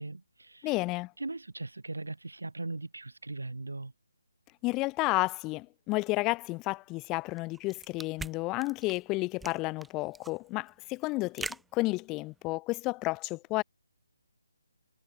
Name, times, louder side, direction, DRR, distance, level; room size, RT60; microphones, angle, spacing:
voice 1, 0.0-0.7 1.2-3.9, right 2 dB, 75° right, 7.1 m, -39 dB
voice 2, 0.6-1.1 4.6-13.6, left 22 dB, 15° left, 2.5 m, -31 dB
sound 1, 7.3-12.5, right 3 dB, 5° right, 1.8 m, -44 dB
figure-of-eight pair, 150°, 0 cm